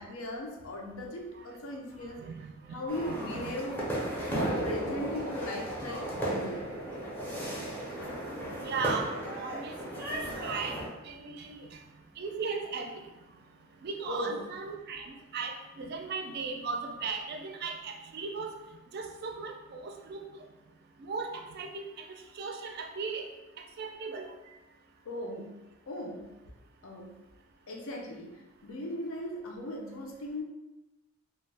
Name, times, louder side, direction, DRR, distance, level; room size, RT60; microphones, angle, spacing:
voice 1, 0.0-2.2 2.7-3.8 4.3-6.8 14.1-14.4 25.1-25.6 25.9-26.3 26.8-27.2 27.7-30.4, left 1 dB, 85° left, 0 dB, 0.5 m, -38 dB
voice 2, 2.2-2.5 3.1-3.5 4.7-4.8 8.6-11.8 12.2-13.0 13.8-18.5 18.9-20.2 21.0-21.8 22.4-23.3 23.8-24.3, right 4 dB, 50° right, 4 dB, 0.4 m, -37 dB
sound 1, 2.9-10.9, right 1 dB, 10° left, 0.5 m, -35 dB
2.3 x 2.0 x 3.2 m, 1.0 s
head